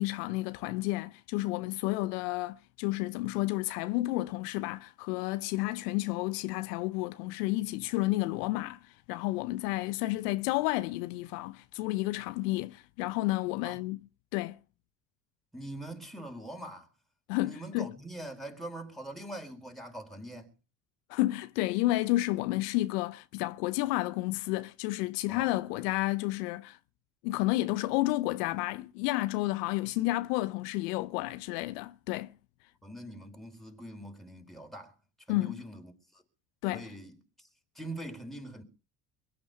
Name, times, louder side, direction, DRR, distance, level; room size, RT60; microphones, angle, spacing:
voice 1, 0.0-8.8 9.1-14.0 14.3-14.6 17.3-17.9 21.1-26.8 27.2-32.3 35.3-35.6 36.6-36.9, left 18 dB, 75° left, 0.8 m, -31 dB
voice 2, 15.5-16.9 17.4-20.5 25.3-25.6 32.8-34.9 35.3-36.2 36.7-37.2 37.7-38.6, right 1 dB, ahead, 4.3 m, -43 dB
23.0 x 9.4 x 5.6 m
hypercardioid pair, 70°, 48 cm